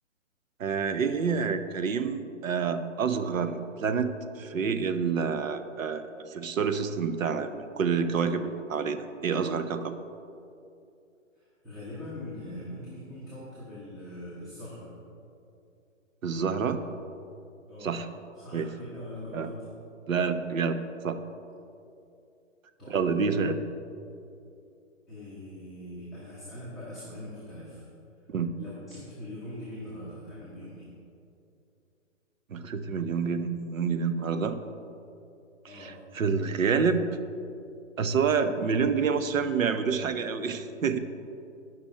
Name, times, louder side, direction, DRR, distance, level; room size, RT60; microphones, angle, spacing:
voice 1, 0.6-9.9 16.2-16.8 17.8-18.1 18.5-18.7 19.3-19.5 20.1-21.2 22.9-23.6 28.3-28.5 32.5-34.6 35.6-37.0 38.0-41.0, right 5 dB, 85° right, 9 dB, 0.8 m, -28 dB
voice 2, 11.3-15.0 17.7-18.1 18.4-19.6 22.8-23.2 25.1-27.9 28.6-30.9 35.6-36.0, left 1 dB, ahead, -13 dB, 1.3 m, -42 dB
10.5 x 6.0 x 4.4 m, 2.6 s
hypercardioid pair, 155°, 39 cm